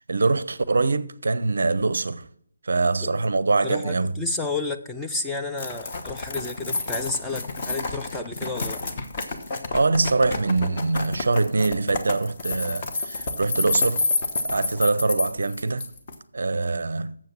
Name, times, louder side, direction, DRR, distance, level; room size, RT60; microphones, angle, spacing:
voice 1, 0.1-2.3 2.6-4.2 9.7-14.1 14.4-15.9 16.3-17.1, right 3 dB, 55° right, 0.5 m, -23 dB
voice 2, 3.6-8.8, left 3 dB, 5° left, 0.4 m, -31 dB
sound 1, 5.6-16.1, left 3 dB, 30° left, 1.1 m, -29 dB
7.7 x 7.4 x 7.3 m
figure-of-eight pair, 150°, 0 cm